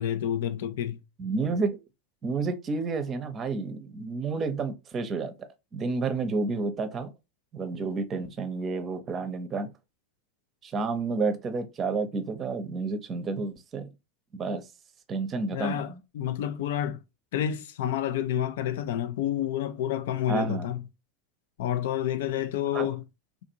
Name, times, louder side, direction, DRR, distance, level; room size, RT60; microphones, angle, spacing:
voice 1, 0.0-1.0 15.5-17.0 17.3-20.8 21.6-23.0, left 11 dB, 75° left, 0.4 m, -29 dB
voice 2, 1.2-1.8 2.2-5.3 5.7-7.1 7.5-9.7 10.6-13.9 14.3-14.6 15.1-16.0 20.3-20.7 22.7-22.9, right 4 dB, 25° right, 0.6 m, -30 dB
3.6 x 2.5 x 2.8 m
supercardioid pair, 120°, 0 cm